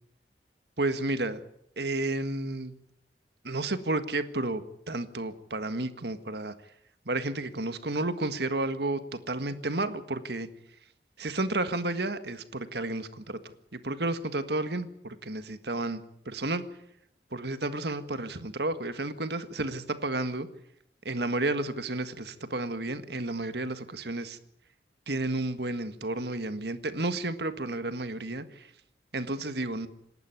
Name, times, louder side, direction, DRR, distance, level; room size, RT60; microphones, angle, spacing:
voice 1, 0.8-1.4 1.8-2.7 3.4-6.5 7.0-10.5 11.2-16.6 17.3-20.5 21.0-24.4 25.1-28.7 29.1-29.9, right 2 dB, 60° right, 11 dB, 1.7 m, -32 dB
27.5 x 12.0 x 9.5 m, 0.74 s
head